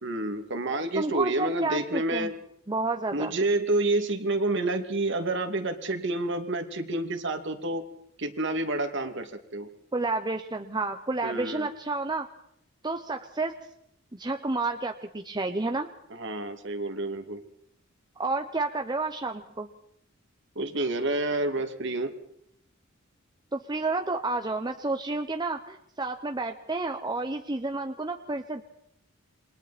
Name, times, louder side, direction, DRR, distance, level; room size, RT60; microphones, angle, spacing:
voice 1, 0.0-2.3 3.1-7.8 8.2-9.7 11.2-11.7 16.1-17.4 20.6-22.1, right 2 dB, 65° right, 6 dB, 2.4 m, -29 dB
voice 2, 1.0-2.3 2.7-3.3 9.9-12.3 12.8-13.5 14.1-15.9 18.2-19.7 23.5-28.6, right 3 dB, 20° right, 5 dB, 1.0 m, -30 dB
28.5 x 23.0 x 4.3 m, 0.74 s
head